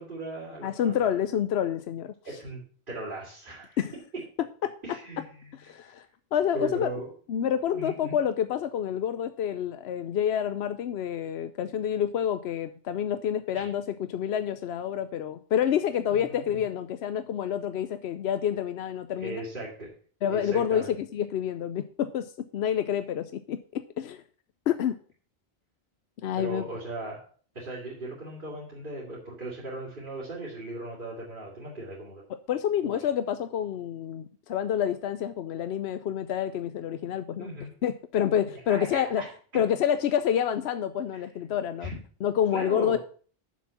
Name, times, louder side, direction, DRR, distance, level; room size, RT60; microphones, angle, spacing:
voice 1, 0.0-0.9 2.2-3.8 4.8-5.3 5.7-6.0 6.5-7.1 7.7-8.1 13.5-13.7 16.1-16.6 19.2-19.9 20.3-20.9 26.3-27.2 27.5-32.2 32.8-33.0 37.4-37.7 38.7-39.6 41.1-41.2 41.8-41.9 42.5-43.0, right 2 dB, 55° right, -8 dB, 3.2 m, -38 dB
voice 2, 0.6-2.1 3.8-3.9 4.4-5.0 5.5-6.0 6.3-6.9 7.3-19.4 20.2-24.2 24.7-25.0 26.2-26.6 32.5-37.5 37.8-39.2 39.5-41.9 42.2-43.0, left 9 dB, 90° left, 11 dB, 0.9 m, -28 dB
7.5 x 6.3 x 7.2 m, 0.43 s
omnidirectional pair, 1.0 m